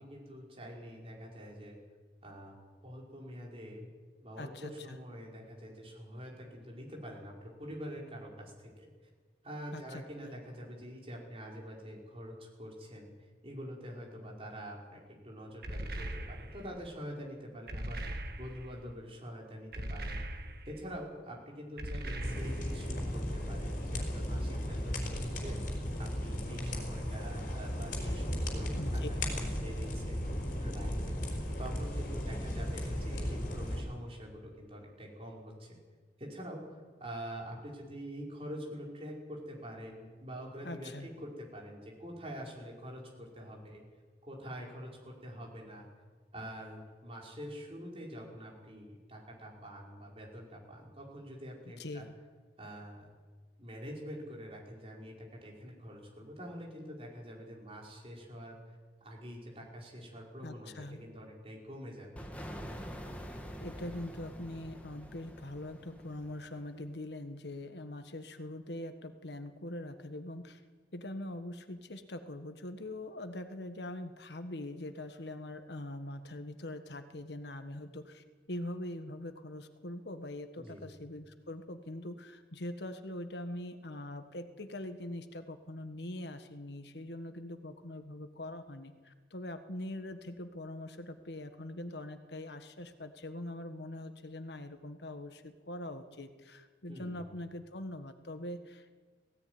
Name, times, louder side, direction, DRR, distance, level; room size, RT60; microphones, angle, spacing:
voice 1, 0.0-1.8 2.2-2.5 2.8-3.9 4.2-8.9 9.4-13.1 13.4-18.0 18.4-20.2 20.7-25.6 26.0-30.2 30.6-31.2 31.6-35.8 36.2-43.8 44.2-45.9 46.3-52.0 52.6-53.1 53.6-62.2 80.6-80.8 96.9-97.3, equal, 35° right, -2 dB, 5.1 m, -45 dB
voice 2, 4.4-5.0 9.7-10.4 28.8-29.1 40.6-41.1 51.8-52.2 60.4-61.1 63.6-70.6 70.9-98.9, left 1 dB, 80° left, 8 dB, 1.5 m, -43 dB
sound 1, 15.6-16.7 17.7-18.8 19.7-20.8 21.8-22.9, right 1 dB, 60° right, 1.9 m, -40 dB
sound 2, 22.2-33.8, equal, 50° left, 4.7 m, -35 dB
sound 3, 62.2-66.8, equal, 10° left, 1.9 m, -46 dB
17.0 x 17.0 x 9.6 m, 1.4 s
head